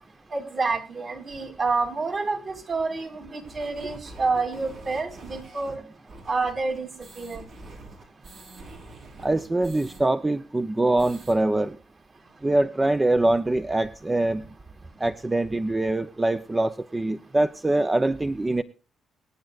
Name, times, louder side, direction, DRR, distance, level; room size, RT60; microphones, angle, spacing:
voice 1, 0.3-5.8 6.3-6.9 7.2-7.4, right 3 dB, 45° right, 4 dB, 3.1 m, -28 dB
sound 1, 3.4-10.0 10.3-10.4 10.7-11.4, right 2 dB, 65° right, 4.4 m, -46 dB
voice 2, 9.2-11.8 12.4-14.4 15.0-18.6, right 2 dB, 15° right, 10 dB, 0.6 m, -23 dB
24.5 x 9.2 x 2.4 m, 0.33 s
cardioid pair, 90°, 0 cm